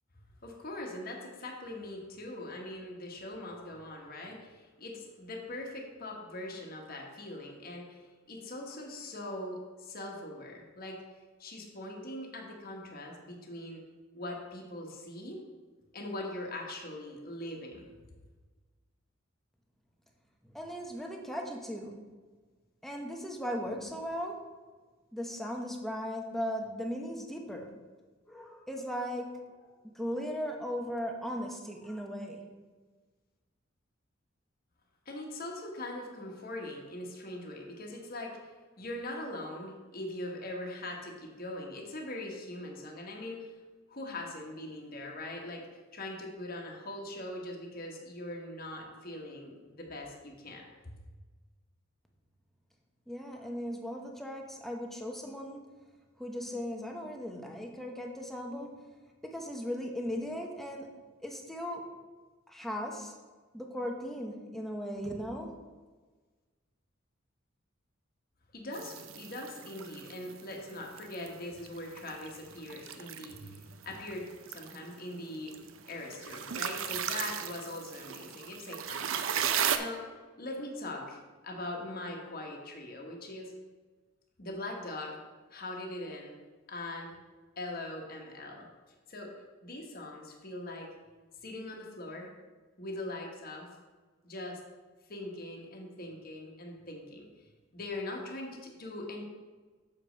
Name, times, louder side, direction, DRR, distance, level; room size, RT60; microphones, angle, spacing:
voice 1, 0.4-11.0 11.4-13.8 14.1-15.4 15.9-17.9 35.0-38.5 38.8-43.5 43.9-45.6 45.9-50.9 68.5-75.5 75.9-79.1 79.5-80.0 80.4-83.5 84.4-85.2 85.5-86.3 86.7-87.2 87.6-88.7 89.1-89.3 89.6-90.9 91.4-92.3 92.8-93.7 94.2-94.6 95.1-99.2, left 1 dB, 45° left, 0 dB, 1.3 m, -41 dB
voice 2, 20.4-22.0 22.8-24.4 25.1-27.7 28.3-29.6 29.9-32.5 53.1-55.7 56.2-58.8 59.2-60.9 61.2-61.8 62.5-63.2 63.5-65.5, equal, ahead, 1 dB, 0.8 m, -37 dB
sound 1, 68.7-79.8, right 8 dB, 80° right, 0.5 m, -37 dB
7.1 x 5.1 x 5.1 m, 1.3 s
head